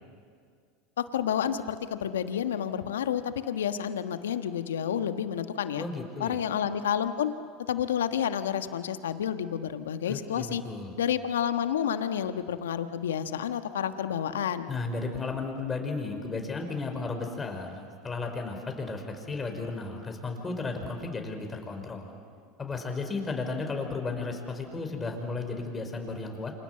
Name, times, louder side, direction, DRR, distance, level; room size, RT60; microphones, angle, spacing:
voice 1, 1.0-5.8 6.2-7.3 7.7-10.6 11.0-14.7, left 9 dB, 85° left, 10 dB, 1.3 m, -30 dB
voice 2, 5.7-6.4 10.1-10.9 14.7-22.1 22.6-26.5, left 3 dB, 20° left, 4 dB, 5.2 m, -34 dB
29.0 x 26.5 x 7.8 m, 2.1 s
hypercardioid pair, 95°, 0 cm